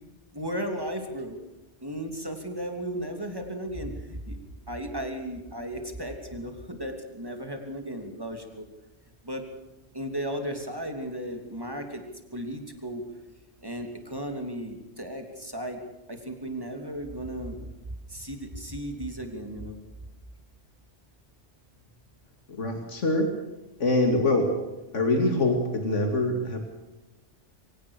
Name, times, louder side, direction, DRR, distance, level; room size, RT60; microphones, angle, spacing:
voice 1, 0.3-1.4 1.8-4.4 4.7-8.6 9.2-9.4 9.9-12.0 12.3-13.0 13.6-15.8 16.1-17.6 18.1-19.7, equal, 20° right, 5 dB, 3.1 m, -35 dB
voice 2, 22.5-23.3 23.8-24.5 24.9-26.7, left 2 dB, 90° left, 4 dB, 2.7 m, -24 dB
24.0 x 17.5 x 6.7 m, 1.0 s
omnidirectional pair, 1.2 m